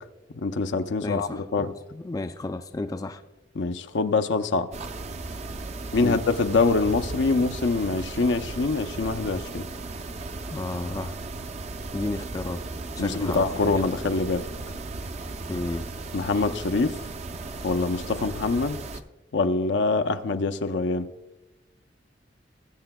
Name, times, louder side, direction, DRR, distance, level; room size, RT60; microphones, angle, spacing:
voice 1, 0.4-1.7 3.6-4.7 5.9-9.7 13.0-14.4 16.1-16.9 17.6-18.8 19.3-21.1, left 3 dB, 80° left, 10 dB, 0.6 m, -24 dB
voice 2, 1.0-3.2 6.0-6.2 10.5-11.2 11.9-12.6 13.0-14.0 15.5-15.9, left 2 dB, 20° left, 8 dB, 0.3 m, -32 dB
sound 1, 4.7-19.0, right 3 dB, 40° right, 0.5 m, -36 dB
20.0 x 7.8 x 2.2 m, 0.98 s
head